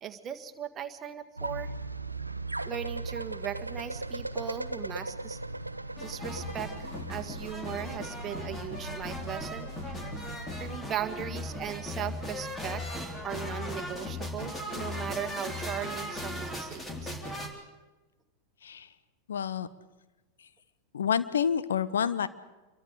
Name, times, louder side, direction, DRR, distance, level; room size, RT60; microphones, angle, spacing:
voice 1, 0.0-1.7 2.6-5.4 6.0-9.7 10.6-12.8 13.2-17.2, right 10 dB, 25° right, 8 dB, 1.7 m, -38 dB
sound 1, 1.4-10.8, right 2 dB, 85° right, 0.8 m, -38 dB
sound 2, 6.0-17.5, left 1 dB, 15° left, 3.9 m, -38 dB
voice 2, 19.3-19.7 20.9-22.3, left 7 dB, 65° left, 14 dB, 1.1 m, -28 dB
27.5 x 23.0 x 5.0 m, 1.1 s
figure-of-eight pair, 90°, 0 cm